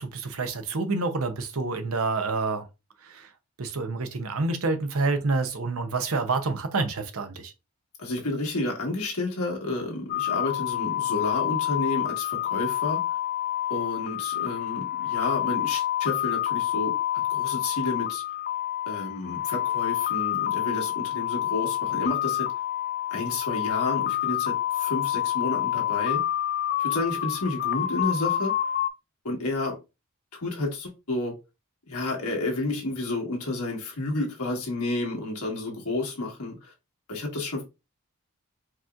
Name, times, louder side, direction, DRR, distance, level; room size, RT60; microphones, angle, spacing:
voice 1, 0.0-2.6 3.1-3.2 3.6-7.5, right 3 dB, 70° right, 0.8 m, -28 dB
voice 2, 8.0-13.0 13.7-16.9 17.3-18.2 18.9-22.5 23.1-26.2 26.8-28.5 29.2-29.8 30.3-31.3 31.9-36.7 37.1-37.6, left 2 dB, 90° left, 1.6 m, -30 dB
sound 1, 10.1-28.9, left 12 dB, 40° left, 0.3 m, -28 dB
4.7 x 3.0 x 2.4 m
head